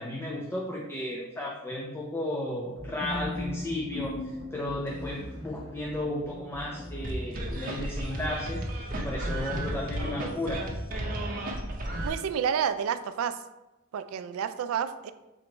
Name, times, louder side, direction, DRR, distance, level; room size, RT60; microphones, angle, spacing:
voice 1, 0.0-8.7 8.9-10.6, left 1 dB, 10° left, -2 dB, 0.4 m, -34 dB
sound 1, 2.6-7.7, left 1 dB, 60° left, 1.5 m, -39 dB
sound 2, 7.0-12.1, right 1 dB, 40° right, 0.7 m, -33 dB
voice 2, 12.0-13.4 13.9-15.1, right 8 dB, 80° right, 11 dB, 0.3 m, -29 dB
3.8 x 3.0 x 4.4 m, 1.0 s
head